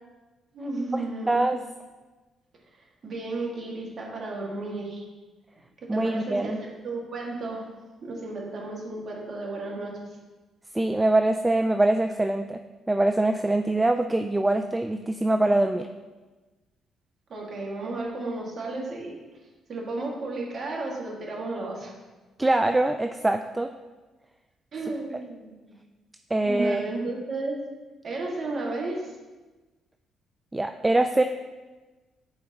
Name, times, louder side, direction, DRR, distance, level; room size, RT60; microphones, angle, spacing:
voice 1, 0.5-1.5 2.7-5.1 5.9-9.9 17.3-19.2 19.7-21.9 24.7-25.7 26.4-27.6 28.0-29.1, right 2 dB, 50° right, -2 dB, 1.9 m, -33 dB
voice 2, 1.3-1.6 5.9-6.6 10.7-12.6 12.9-15.9 22.4-23.7 26.3-26.9 30.5-31.2, right 2 dB, 15° right, 7 dB, 0.3 m, -23 dB
11.0 x 4.3 x 3.0 m, 1.2 s
cardioid pair, 90°, 0 cm